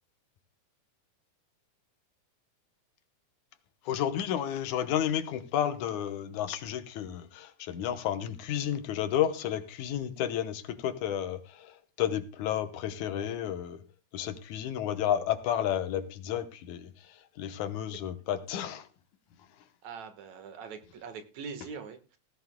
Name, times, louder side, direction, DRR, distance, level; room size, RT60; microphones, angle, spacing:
voice 1, 3.9-11.7 12.0-13.8 14.1-16.9 17.4-18.9, left 10 dB, 80° left, 2.5 m, -31 dB
voice 2, 19.8-22.2, right 5 dB, 70° right, 2.7 m, -43 dB
17.5 x 15.5 x 2.2 m
omnidirectional pair, 3.4 m